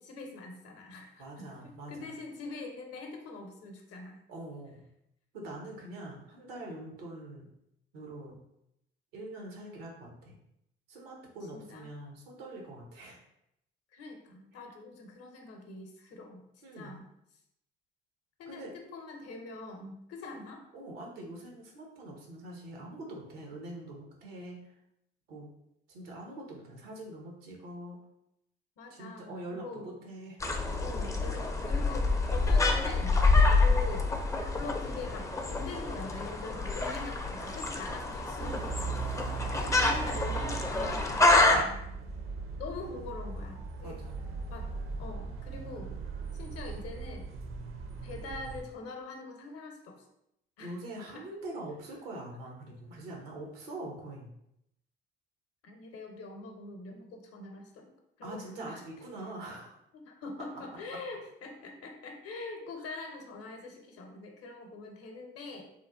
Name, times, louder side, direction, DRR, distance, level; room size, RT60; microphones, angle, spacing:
voice 1, 0.0-4.2 11.5-11.9 13.9-16.4 16.7-17.1 18.4-20.7 28.8-29.9 30.8-33.3 33.6-34.1 34.5-39.0 39.6-41.7 42.6-44.0 44.5-44.7 45.0-45.9 46.3-47.3 48.0-50.1 50.6-50.7 51.1-51.2 55.6-57.9 58.2-58.8 60.0-65.6, left 3 dB, 55° left, 3 dB, 0.7 m, -43 dB
voice 2, 1.2-2.1 4.3-4.8 5.3-7.5 7.9-8.4 9.1-10.4 10.9-13.2 14.5-14.6 16.6-17.0 18.5-18.7 20.7-24.7 25.3-25.5 25.9-28.0 28.9-30.4 39.5-39.8 43.8-44.2 50.6-54.3 58.2-59.8 62.8-63.0, right 1 dB, 80° right, 0 dB, 0.7 m, -44 dB
sound 1, 30.4-41.6, left 3 dB, 10° left, 0.4 m, -27 dB
sound 2, 38.4-48.6, right 5 dB, 50° right, 0.5 m, -39 dB
3.0 x 2.2 x 2.4 m, 0.79 s
hypercardioid pair, 45°, 29 cm